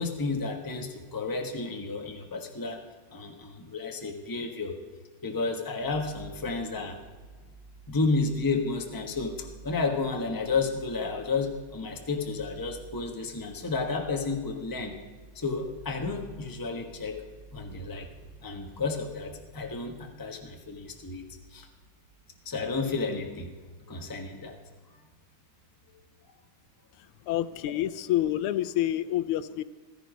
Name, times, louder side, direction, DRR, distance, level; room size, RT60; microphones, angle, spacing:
voice 1, 0.0-2.8 3.1-4.7 5.2-7.0 7.9-14.9 15.3-17.2 17.5-18.1 18.4-21.2 21.5-21.7 22.4-23.5 23.9-24.6, left 3 dB, 15° left, 2 dB, 0.9 m, -31 dB
sound 1, 5.8-23.2 23.6-24.3, right 4 dB, 75° right, 3.8 m, -52 dB
voice 2, 27.3-29.6, left 13 dB, 85° left, 14 dB, 1.5 m, -28 dB
15.5 x 14.0 x 5.2 m, 1.4 s
omnidirectional pair, 2.4 m